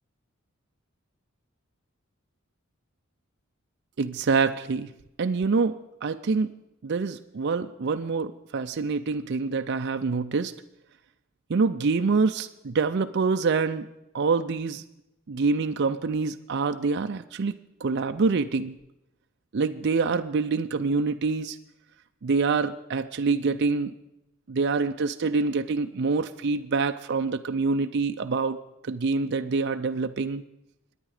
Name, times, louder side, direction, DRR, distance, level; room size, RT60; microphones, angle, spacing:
voice 1, 4.0-4.9 5.2-6.6 6.8-10.5 11.5-13.9 14.1-14.8 15.3-18.8 19.5-21.6 22.2-23.9 24.5-28.6 28.8-30.4, right 4 dB, 55° right, 7 dB, 0.5 m, -26 dB
24.0 x 10.0 x 4.9 m, 0.89 s
head